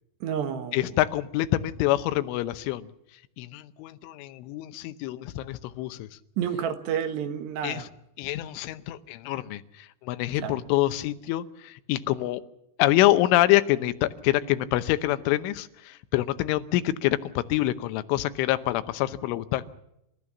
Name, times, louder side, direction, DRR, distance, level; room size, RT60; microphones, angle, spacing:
voice 1, 0.2-0.9 6.4-7.9 10.4-10.6, right 8 dB, 70° right, 9 dB, 3.4 m, -30 dB
voice 2, 0.7-2.9 3.4-6.1 7.6-7.9 8.2-12.4 12.8-19.6, left 15 dB, 90° left, 13 dB, 3.4 m, -26 dB
29.0 x 14.0 x 7.2 m, 0.83 s
omnidirectional pair, 5.5 m